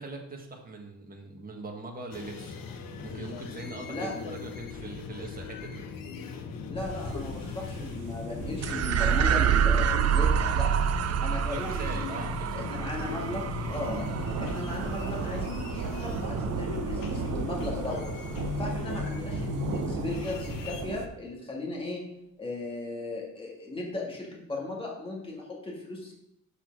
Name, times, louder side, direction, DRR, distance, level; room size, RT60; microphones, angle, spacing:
voice 1, 0.0-2.6 3.0-5.8 10.1-10.7 11.3-12.8, right 2 dB, 25° right, 1 dB, 1.6 m, -41 dB
sound 1, 2.1-20.8, left 5 dB, 85° left, 1.0 m, -38 dB
voice 2, 6.7-10.9 11.2-12.3 12.5-14.1 14.4-18.1 18.6-22.0 22.4-26.1, left 2 dB, 15° left, -2 dB, 2.0 m, -36 dB
sound 2, 6.8-21.1, right 5 dB, 65° right, 0.9 m, -37 dB
sound 3, 8.6-17.3, right 8 dB, 50° right, 0.5 m, -28 dB
6.5 x 5.8 x 6.0 m, 0.78 s
cardioid pair, 140°, 33 cm